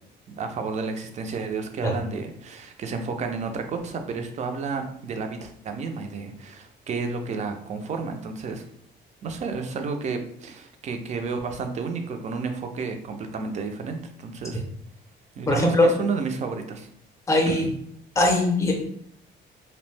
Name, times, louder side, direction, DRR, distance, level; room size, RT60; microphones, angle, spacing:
voice 1, 0.3-8.6 9.2-14.6 15.4-16.9 17.5-17.7, right 4 dB, 35° right, 5 dB, 0.4 m, -31 dB
voice 2, 15.5-15.9 17.3-17.6 18.2-18.7, left 2 dB, 15° left, 1 dB, 0.6 m, -20 dB
2.7 x 2.0 x 3.1 m, 0.69 s
cardioid pair, 145°, 20 cm